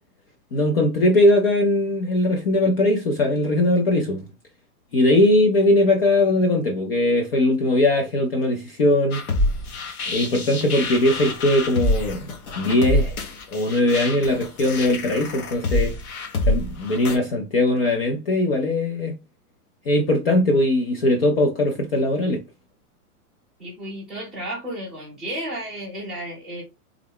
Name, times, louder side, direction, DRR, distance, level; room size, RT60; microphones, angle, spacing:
voice 1, 0.5-4.3 4.9-9.2 10.1-12.3 12.6-13.2 13.5-15.9 16.5-19.2 19.9-22.4, left 1 dB, 40° left, 0.5 m, -20 dB
sound 1, 9.1-17.2, left 1 dB, 70° left, 1.2 m, -26 dB
voice 2, 23.6-26.6, right 1 dB, ahead, 0.8 m, -33 dB
3.5 x 2.2 x 3.4 m
supercardioid pair, 170°, 45 cm